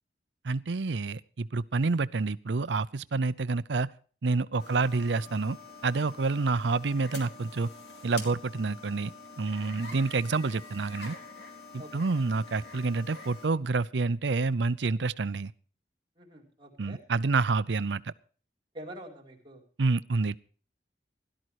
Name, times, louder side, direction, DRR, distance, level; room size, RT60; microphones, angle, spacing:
voice 1, 0.4-3.9 4.2-5.6 5.8-7.7 8.0-9.1 9.4-11.1 11.7-15.5 16.8-18.1 19.8-20.4, right 3 dB, 85° right, 0.6 m, -28 dB
sound 1, 4.6-13.5, left 3 dB, 65° left, 3.9 m, -46 dB
voice 2, 16.2-17.0 18.7-19.6, right 1 dB, 25° right, 4.3 m, -46 dB
17.0 x 12.5 x 4.7 m
head